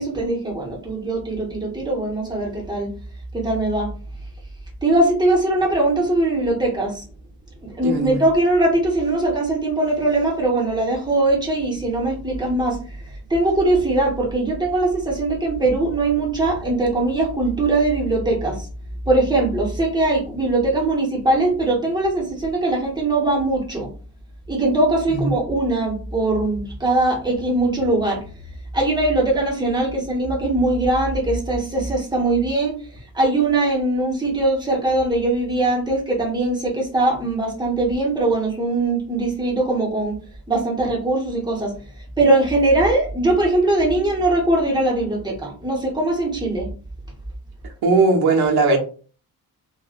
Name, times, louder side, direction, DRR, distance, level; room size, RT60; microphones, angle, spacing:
voice 1, 0.0-2.9 3.3-3.9 4.8-7.0 7.6-12.8 13.3-18.7 19.1-23.9 24.5-28.2 28.7-32.8 33.1-40.1 40.5-41.7 42.2-46.7, right 2 dB, 10° right, -2 dB, 0.8 m, -21 dB
voice 2, 7.8-8.2 25.1-25.3 47.6-48.8, right 3 dB, 80° right, 0 dB, 0.9 m, -18 dB
3.6 x 2.1 x 2.4 m, 0.39 s
wide cardioid pair, 170°, 38 cm